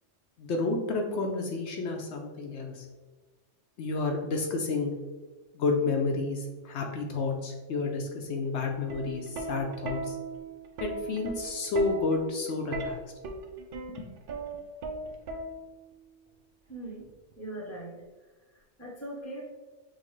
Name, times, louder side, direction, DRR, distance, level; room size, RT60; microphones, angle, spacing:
voice 1, 0.4-2.8 3.8-4.9 5.5-10.1 10.8-13.0, left 3 dB, 70° left, 2 dB, 0.8 m, -30 dB
Plucked string instrument, 8.8-15.9 17.0-17.3, right 3 dB, 60° right, 0.6 m, -38 dB
voice 2, 16.7-17.1 17.4-18.0 18.5-19.5, right 1 dB, 15° left, -1 dB, 0.7 m, -40 dB
6.3 x 2.2 x 3.1 m, 1.2 s
omnidirectional pair, 1.3 m